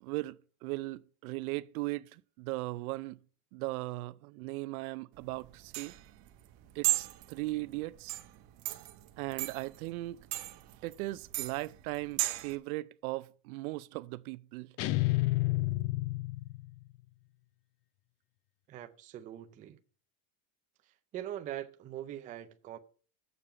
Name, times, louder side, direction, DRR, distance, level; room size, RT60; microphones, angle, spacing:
voice 1, 0.0-3.2 3.5-5.9 6.7-8.2 9.2-10.2 10.8-14.8, right 20 dB, 75° right, 0.6 m, -38 dB
sound 1, 5.2-12.5, right 19 dB, 50° right, 0.9 m, -36 dB
sound 2, 14.8-16.8, left 20 dB, 35° left, 0.5 m, -30 dB
voice 2, 18.7-19.8 20.8-22.8, right 12 dB, 20° right, 0.4 m, -42 dB
7.3 x 6.9 x 6.6 m
supercardioid pair, 155°, 44 cm